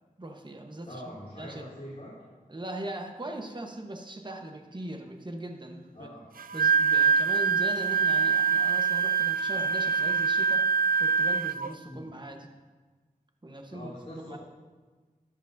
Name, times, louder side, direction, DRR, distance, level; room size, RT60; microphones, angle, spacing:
voice 1, 0.2-1.0 1.4-1.7 2.5-6.1 6.5-12.5 13.4-14.0 14.3-14.4, right 1 dB, 30° right, 3 dB, 1.1 m, -40 dB
voice 2, 0.8-2.3 5.9-6.2 11.8-12.1 13.7-14.4, left 1 dB, 45° left, -10 dB, 3.6 m, -43 dB
Wind instrument woodwind instrument, 6.4-11.7, right 6 dB, 80° right, 0.4 m, -24 dB
13.5 x 10.5 x 2.6 m, 1.3 s
wide cardioid pair, 75°, 15 cm